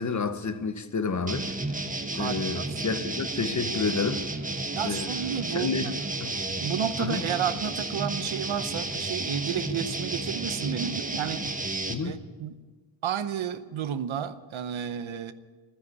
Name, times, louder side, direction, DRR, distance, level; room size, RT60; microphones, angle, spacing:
voice 1, 0.0-1.5 2.2-4.3 4.8-5.1 5.5-5.9 6.2-6.3 7.0-7.2 11.9-12.2, left 4 dB, 40° left, 1.0 m, -30 dB
sound 1, 1.3-11.9, right 2 dB, 15° right, 1.1 m, -32 dB
voice 2, 2.1-2.8 4.8-6.0 6.6-11.5 12.0-12.6 13.0-15.3, right 9 dB, 85° right, 0.9 m, -32 dB
12.5 x 10.0 x 9.8 m
wide cardioid pair, 130°, 46 cm